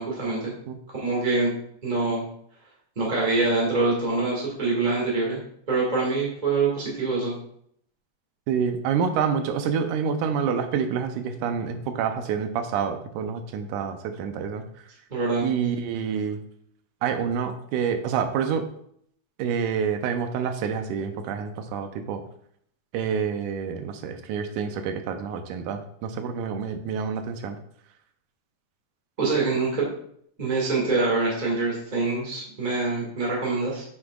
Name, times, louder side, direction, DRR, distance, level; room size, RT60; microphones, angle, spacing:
voice 1, 0.0-0.5 0.9-1.5 1.8-2.2 2.9-5.4 5.7-7.3 15.1-15.5 29.2-29.9 30.4-33.8, right 3 dB, 20° right, -4 dB, 1.5 m, -25 dB
voice 2, 8.5-14.6 15.4-16.4 17.0-18.7 19.4-22.2 22.9-27.6, right 7 dB, 90° right, 7 dB, 2.2 m, -27 dB
9.5 x 6.2 x 2.4 m, 0.67 s
omnidirectional pair, 3.4 m